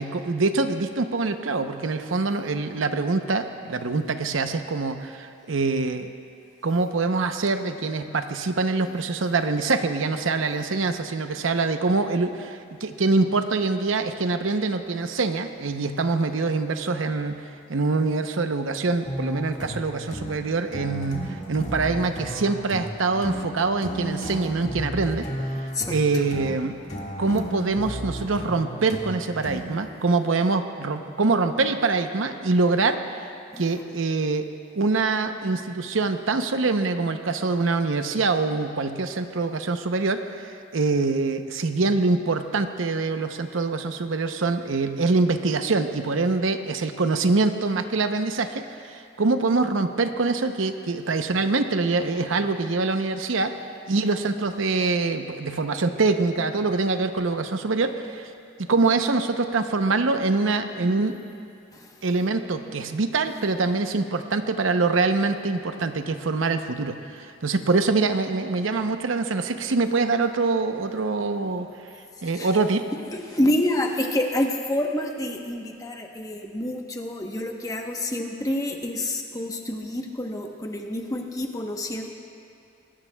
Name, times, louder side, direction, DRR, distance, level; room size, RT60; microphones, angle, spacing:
voice 1, 0.0-6.1 6.6-17.4 17.7-25.3 25.9-26.8 27.2-33.0 33.6-34.5 34.7-53.5 53.9-58.3 58.6-61.2 62.0-71.7 72.2-72.8, right 3 dB, 85° right, 8 dB, 0.7 m, -24 dB
Double bass stab improvisation, 19.0-29.9, equal, 35° left, 1.7 m, -34 dB
voice 2, 25.7-26.2 33.5-33.6 61.7-61.9 72.3-72.5 73.1-82.1, left 1 dB, 15° left, 2 dB, 0.9 m, -28 dB
21.0 x 17.0 x 2.3 m, 2.5 s
head